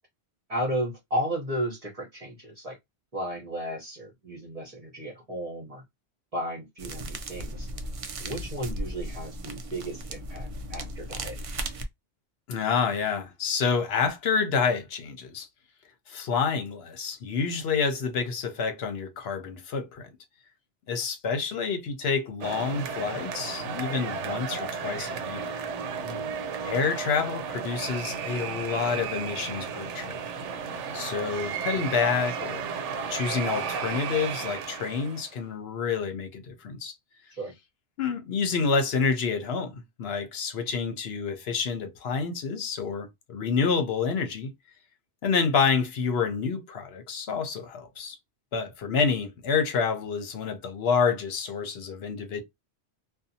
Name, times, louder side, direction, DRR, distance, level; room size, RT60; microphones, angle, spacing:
voice 1, 0.5-2.8 3.1-5.8 6.3-7.7 8.2-11.4 25.9-26.3 37.3-37.5, equal, 35° right, 0.9 m, -34 dB
sound 1, 6.8-11.8, right 1 dB, 65° right, 0.3 m, -36 dB
voice 2, 12.5-15.5 16.1-20.1 20.9-25.5 26.6-30.2 30.9-32.7 33.1-36.9 38.0-44.5 45.2-48.2 48.5-52.4, left 5 dB, 65° left, 0.9 m, -28 dB
sound 2, 22.4-35.3, right 6 dB, 85° right, 0.9 m, -34 dB
2.6 x 2.3 x 2.6 m
omnidirectional pair, 1.2 m